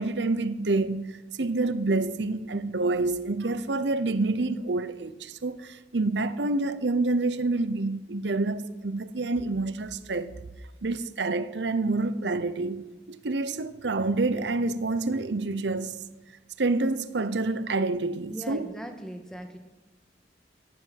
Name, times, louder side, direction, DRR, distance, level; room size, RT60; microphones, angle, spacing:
voice 1, 0.0-10.3 10.8-16.0 16.6-18.7, right 3 dB, 90° right, 0.8 m, -28 dB
voice 2, 18.3-19.6, equal, 5° left, 1.5 m, -39 dB
15.5 x 7.7 x 9.6 m
head